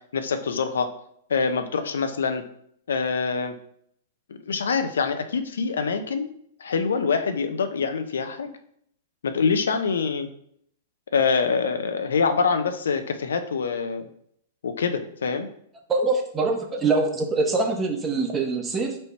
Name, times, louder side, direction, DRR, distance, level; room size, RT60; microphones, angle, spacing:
voice 1, 0.1-0.9 1.3-2.4 2.9-3.5 4.3-6.3 6.6-8.5 9.2-10.3 11.1-14.1 14.6-15.5, left 5 dB, 80° left, 8 dB, 0.5 m, -25 dB
voice 2, 15.9-19.0, right 3 dB, 20° right, 3 dB, 0.9 m, -24 dB
4.3 x 2.7 x 4.4 m, 0.68 s
hypercardioid pair, 110°, 0 cm